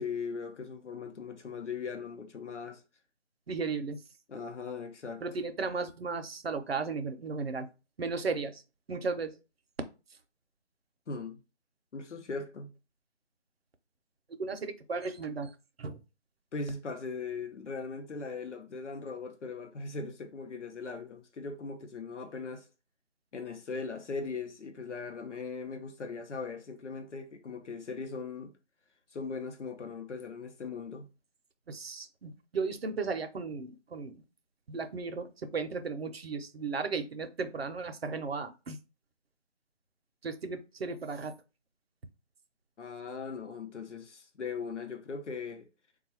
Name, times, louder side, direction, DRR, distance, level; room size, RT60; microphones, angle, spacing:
voice 1, 0.0-2.8 4.3-5.2 11.1-11.4 11.9-12.7 16.5-22.7 23.3-28.5 29.1-31.1 42.8-45.7, left 4 dB, 75° left, 0.8 m, -39 dB
voice 2, 3.5-4.0 5.2-7.7 8.0-8.6 8.9-9.4 14.4-15.5 15.8-16.0 31.7-34.2 34.7-38.8 40.2-41.3, right 4 dB, 55° right, 0.6 m, -35 dB
3.6 x 2.3 x 4.3 m
figure-of-eight pair, 165°, 36 cm